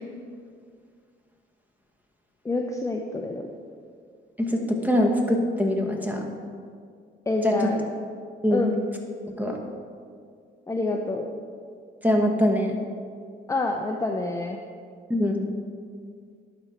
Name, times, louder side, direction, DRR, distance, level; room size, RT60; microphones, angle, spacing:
voice 1, 2.4-3.5 7.3-7.9 8.5-8.8 10.7-11.3 13.5-14.6, left 2 dB, 15° left, 2 dB, 0.6 m, -27 dB
voice 2, 4.4-6.2 7.4-7.5 8.4-8.7 9.4-9.6 12.0-12.7 15.1-15.4, left 1 dB, 10° right, 2 dB, 1.3 m, -23 dB
11.5 x 5.2 x 4.2 m, 2.1 s
cardioid pair, 90°, 20 cm